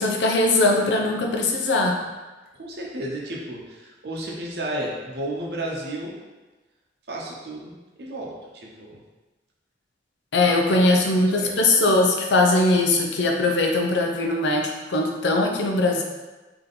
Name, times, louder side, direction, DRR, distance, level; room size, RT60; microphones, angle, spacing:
voice 1, 0.0-1.9 10.3-16.0, left 2 dB, 75° left, 1 dB, 0.6 m, -20 dB
voice 2, 2.6-6.1 7.1-9.0 10.4-11.5, right 1 dB, 65° right, -2 dB, 0.8 m, -33 dB
3.7 x 2.9 x 3.9 m, 1.2 s
head